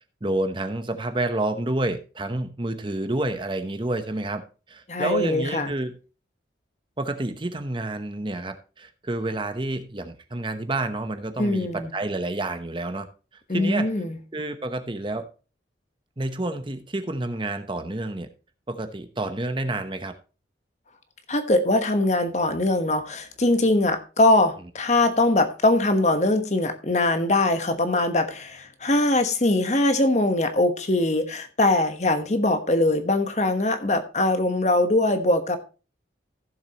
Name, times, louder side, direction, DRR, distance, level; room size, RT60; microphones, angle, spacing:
voice 1, 0.2-4.4 4.7-6.0 7.0-13.9 14.3-15.3 16.2-18.3 18.7-20.1, right 2 dB, 30° right, 0.9 m, -29 dB
voice 2, 4.9-5.7 11.4-11.9 13.5-14.2 21.3-35.6, left 2 dB, 40° left, 1.2 m, -22 dB
15.0 x 7.3 x 3.0 m
head